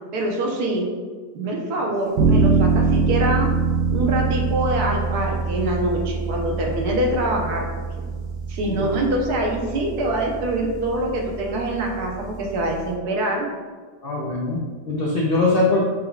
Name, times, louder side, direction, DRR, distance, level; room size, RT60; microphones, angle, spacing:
voice 1, 0.1-0.9 1.3-3.5 3.9-8.1 8.5-13.5, right 1 dB, 70° right, 0 dB, 1.3 m, -24 dB
sound 1, 2.2-12.9, right 4 dB, 85° right, 1.5 m, -24 dB
voice 2, 14.0-15.8, left 2 dB, 80° left, -3 dB, 0.5 m, -22 dB
6.5 x 3.5 x 2.3 m, 1.5 s
omnidirectional pair, 1.8 m